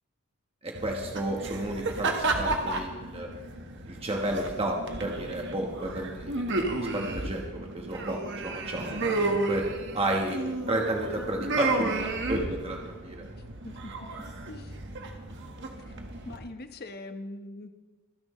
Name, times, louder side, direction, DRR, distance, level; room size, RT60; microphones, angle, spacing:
voice 1, 0.6-3.3 3.9-7.4 7.7-9.7 9.9-10.4 10.7-13.2, right 1 dB, 25° right, 0 dB, 1.3 m, -32 dB
sound 1, 0.7-16.4, right 2 dB, 55° right, 1.5 m, -33 dB
voice 2, 13.6-14.1 14.5-14.8 15.9-16.0 16.2-17.7, left 2 dB, 45° left, 7 dB, 1.1 m, -42 dB
25.5 x 10.5 x 3.2 m, 1.3 s
head